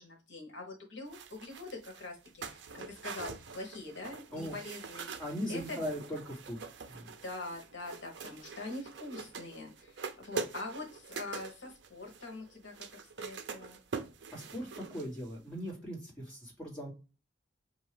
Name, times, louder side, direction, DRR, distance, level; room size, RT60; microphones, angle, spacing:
voice 1, 0.0-5.2 5.5-5.8 7.2-12.9 13.2-13.8, left 2 dB, 70° left, 1 dB, 1.1 m, -44 dB
sound 1, 1.1-15.4 15.7-15.8, right 5 dB, 60° right, 0.5 m, -44 dB
voice 2, 5.2-7.1 14.3-16.9, equal, 5° left, -4 dB, 2.0 m, -39 dB
5.1 x 2.7 x 3.3 m, 0.31 s
head